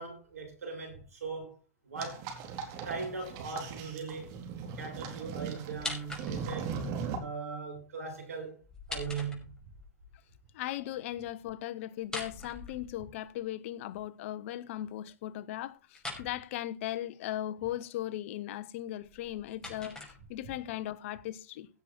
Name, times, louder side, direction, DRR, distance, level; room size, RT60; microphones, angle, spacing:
voice 1, 0.0-1.6 1.8-2.3 2.8-4.4 4.8-6.9 7.2-8.6 8.9-9.4, right 4 dB, 90° right, 7.3 m, -39 dB
sound 1, 2.0-7.2, right 6 dB, 50° right, 4.0 m, -39 dB
sound 2, 5.7-6.7 8.6-9.9 12.0-13.3 15.9-16.3 19.0-20.6, left 2 dB, 10° left, 5.8 m, -42 dB
voice 2, 10.5-21.7, left 13 dB, 60° left, 1.1 m, -38 dB
17.0 x 7.3 x 4.5 m
hypercardioid pair, 110°, 8 cm